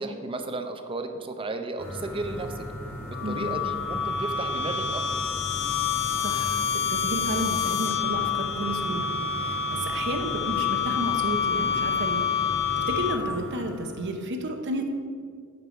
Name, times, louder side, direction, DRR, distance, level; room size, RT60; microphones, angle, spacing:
voice 1, 0.0-2.6 3.1-5.1, right 2 dB, 25° right, 7 dB, 0.6 m, -34 dB
sound 1, 1.8-14.3, equal, 10° left, 1.4 m, -38 dB
sound 2, 3.1-13.5, left 7 dB, 55° left, 0.5 m, -28 dB
voice 2, 6.2-6.6 6.9-9.1 9.4-12.3 12.9-14.9, right 1 dB, 55° right, 5 dB, 0.9 m, -32 dB
8.2 x 6.7 x 4.5 m, 2.1 s
head